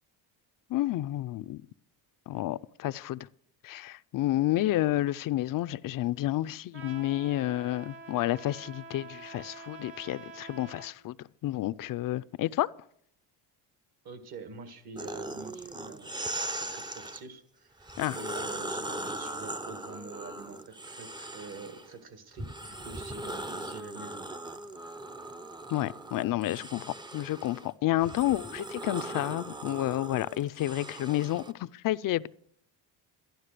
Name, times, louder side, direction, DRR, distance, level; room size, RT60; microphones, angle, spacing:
voice 1, 0.7-1.6 2.3-3.3 3.6-11.1 11.4-12.7 18.0-18.2 25.7-32.4, left 15 dB, 50° left, 0.5 m, -30 dB
Trumpet, 6.7-10.9, right 3 dB, 30° right, 1.0 m, -47 dB
voice 2, 14.0-24.3, right 4 dB, 55° right, 2.0 m, -46 dB
sound 1, 15.0-17.2 17.8-21.9 22.4-31.5, right 2 dB, 10° right, 0.6 m, -39 dB
11.5 x 11.5 x 6.6 m
cardioid pair, 105°, 43 cm